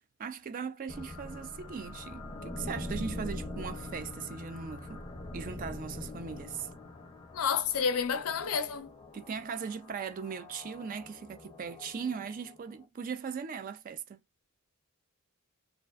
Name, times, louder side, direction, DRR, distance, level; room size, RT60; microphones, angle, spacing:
voice 1, 0.2-5.1 5.3-6.7 9.1-14.2, right 6 dB, 40° right, 0.3 m, -39 dB
sound 1, 0.9-12.8, left 1 dB, 20° left, 0.5 m, -43 dB
voice 2, 7.3-8.9, left 6 dB, 85° left, 0.5 m, -30 dB
2.4 x 2.2 x 2.2 m
head